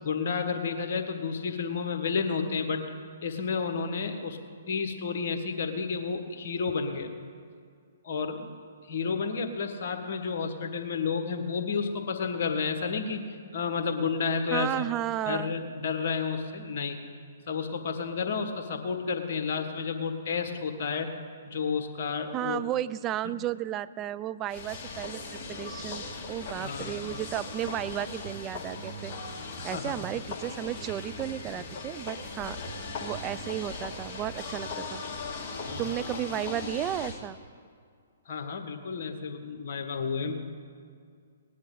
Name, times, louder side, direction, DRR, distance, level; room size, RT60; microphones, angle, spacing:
voice 1, 0.0-2.8 3.2-4.4 4.7-7.1 8.0-8.5 8.9-13.2 13.5-14.8 15.3-17.0 17.5-21.1 21.4-22.6 26.6-27.1 29.6-30.0 35.7-35.9 38.3-40.3, left 5 dB, 55° left, 6 dB, 1.5 m, -31 dB
voice 2, 14.5-15.5 22.3-29.3 29.6-32.6 33.0-35.0 35.8-37.4, right 12 dB, 25° right, 15 dB, 0.3 m, -33 dB
sound 1, 24.5-37.2, left 3 dB, 30° left, 2.5 m, -38 dB
19.0 x 10.0 x 4.0 m, 2.2 s
figure-of-eight pair, 125°, 0 cm